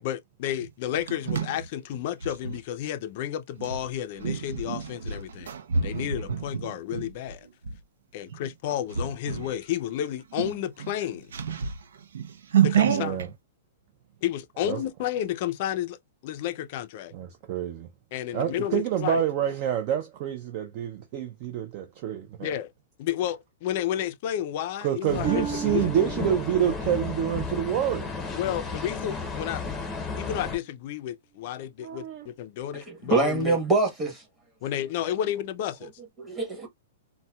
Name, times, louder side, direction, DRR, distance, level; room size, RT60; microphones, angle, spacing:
voice 1, 0.0-5.5 5.8-7.5 8.1-11.3 12.6-13.2 14.2-17.1 18.1-19.2 22.4-22.7 23.0-25.8 28.3-29.6 30.2-33.6 34.6-35.9, left 11 dB, 40° left, 0.4 m, -31 dB
sound 1, 0.6-2.6 3.6-7.8 8.3-8.5 8.9-9.6 9.9-10.0 10.3-13.3, right 7 dB, 85° right, 0.6 m, -29 dB
voice 2, 12.8-13.3 14.7-14.8 17.1-17.9 18.3-22.5 24.8-28.1 31.8-32.3, right 10 dB, 35° right, 0.4 m, -27 dB
sound 2, 25.1-30.6, left 4 dB, 10° left, 0.7 m, -33 dB
Harp, 25.2-29.0 29.5-29.9 30.6-30.7, right 6 dB, 65° right, 1.4 m, -37 dB
voice 3, 32.9-34.2 36.2-36.7, right 3 dB, 10° right, 1.1 m, -24 dB
4.0 x 2.1 x 2.3 m
hypercardioid pair, 165°, 0 cm